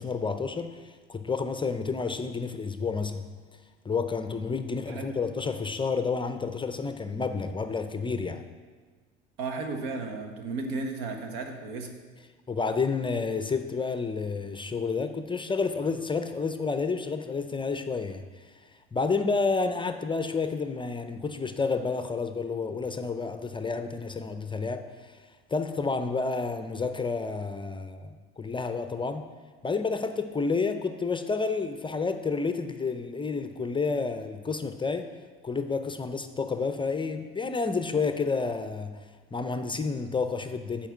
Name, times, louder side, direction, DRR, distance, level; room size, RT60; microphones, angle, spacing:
voice 1, 0.0-3.3 3.8-8.4 12.5-18.6 18.9-25.2 25.5-29.3 29.6-35.1 35.4-39.0 39.3-40.9, left 4 dB, 15° left, 8 dB, 0.6 m, -30 dB
voice 2, 9.4-11.9, right 3 dB, 75° right, 4 dB, 1.3 m, -34 dB
9.1 x 4.5 x 7.2 m, 1.5 s
hypercardioid pair, 75°, 30 cm